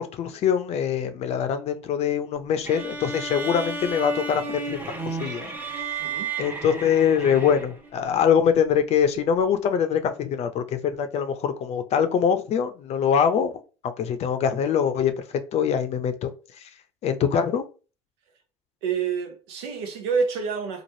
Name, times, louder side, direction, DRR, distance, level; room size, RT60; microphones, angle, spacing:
voice 1, 0.0-5.5 5.7-6.0 6.4-16.3 16.6-16.7 17.0-17.6, left 7 dB, 50° left, 0.5 m, -24 dB
sound 1, 2.6-7.9, right 3 dB, 15° right, 0.8 m, -33 dB
voice 2, 6.0-6.3 18.8-20.8, right 5 dB, 80° right, 0.7 m, -28 dB
3.1 x 2.4 x 2.7 m
hypercardioid pair, 75°, 14 cm